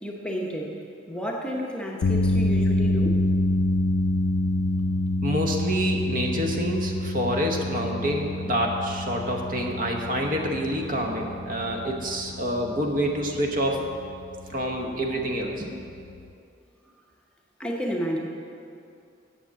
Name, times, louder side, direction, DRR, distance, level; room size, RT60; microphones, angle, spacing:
voice 1, 0.0-0.7 1.1-3.2 17.6-18.2, equal, 5° left, -1 dB, 0.8 m, -31 dB
sound 1, 2.0-16.3, left 1 dB, 80° left, 0.4 m, -27 dB
voice 2, 5.2-13.8 14.5-15.9, equal, 45° right, 1 dB, 1.0 m, -27 dB
8.0 x 7.1 x 7.4 m, 2.5 s
head